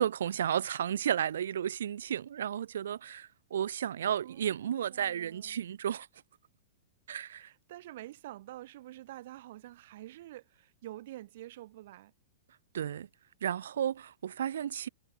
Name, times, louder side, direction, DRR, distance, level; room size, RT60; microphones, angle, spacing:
voice 1, 0.0-6.1 7.1-7.5 12.7-13.1 13.4-14.9, right 9 dB, 80° right, 0.9 m, -33 dB
voice 2, 4.2-5.7 7.4-12.1, right 15 dB, 55° right, 2.0 m, -48 dB
hypercardioid pair, 160°, 0 cm